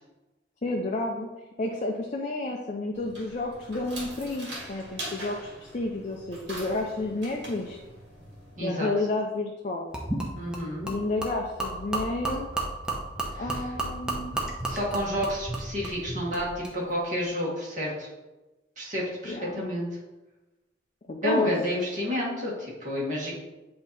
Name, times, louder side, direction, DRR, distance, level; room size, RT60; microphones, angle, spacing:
voice 1, 0.6-1.3 1.6-7.8 8.6-9.9 10.8-12.5 13.4-14.5 19.2-19.7 21.1-21.5, left 2 dB, 40° left, 1 dB, 0.5 m, -31 dB
sound 1, 2.9-8.6, right 1 dB, 65° right, 1.8 m, -42 dB
voice 2, 8.6-8.9 10.4-10.9 13.3-13.6 14.6-18.1 18.8-20.0 21.2-23.3, equal, 40° right, -5 dB, 1.7 m, -30 dB
Gurgling / Liquid, 9.9-16.8, right 2 dB, 5° right, 0.8 m, -33 dB
8.0 x 2.9 x 4.1 m, 1.1 s
head